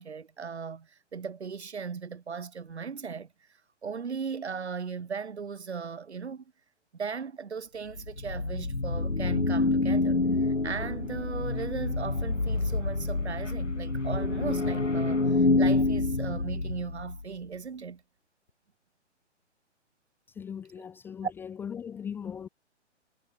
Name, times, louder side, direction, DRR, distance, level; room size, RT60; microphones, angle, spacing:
voice 1, 0.0-3.3 3.8-6.4 6.9-18.0 21.2-21.3, right 6 dB, 65° right, 2.6 m, -37 dB
sound 1, 7.9-17.2, left 3 dB, 90° left, 1.4 m, -27 dB
voice 2, 20.4-22.5, left 7 dB, 5° left, 0.7 m, -39 dB
figure-of-eight pair, 125°, 36 cm